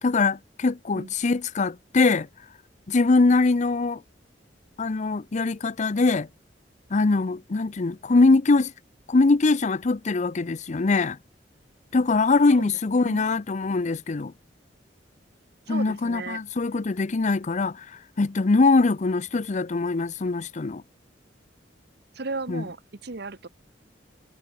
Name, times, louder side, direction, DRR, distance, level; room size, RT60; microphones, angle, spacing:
voice 1, 0.0-2.3 2.9-4.0 4.8-6.3 6.9-8.7 9.1-11.2 11.9-14.3 15.7-17.9 18.2-20.8 22.5-22.6, left 3 dB, 40° left, 0.6 m, -22 dB
voice 2, 12.6-13.4 15.7-16.4 22.1-23.5, right 3 dB, 65° right, 1.3 m, -36 dB
head